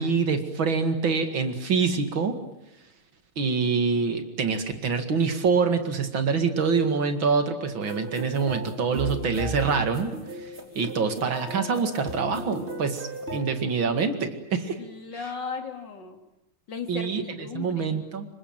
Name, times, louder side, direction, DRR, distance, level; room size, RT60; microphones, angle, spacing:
voice 1, 0.0-2.4 3.4-14.8 16.9-18.3, right 5 dB, 60° right, 7 dB, 2.8 m, -25 dB
sound 1, 7.8-13.4, right 1 dB, 30° right, 4.5 m, -36 dB
voice 2, 14.8-16.2 16.7-18.0, left 5 dB, 55° left, 4 dB, 3.4 m, -37 dB
27.5 x 24.0 x 8.9 m, 0.88 s
omnidirectional pair, 2.4 m